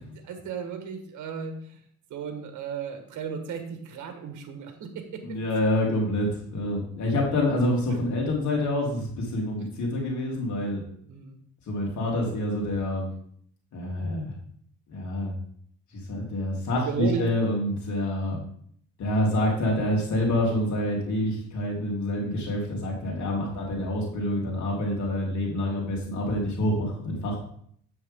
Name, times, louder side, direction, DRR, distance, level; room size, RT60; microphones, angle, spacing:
voice 1, 0.1-1.8 2.1-5.4 11.1-11.4 16.7-17.3, right 6 dB, 75° right, 6 dB, 1.5 m, -34 dB
voice 2, 5.2-10.8 11.7-13.1 13.7-14.3 14.9-15.3 15.9-18.4 19.0-27.4, left 1 dB, 70° left, -2 dB, 3.2 m, -27 dB
8.5 x 7.0 x 3.6 m, 0.63 s
cardioid pair, 90°, 30 cm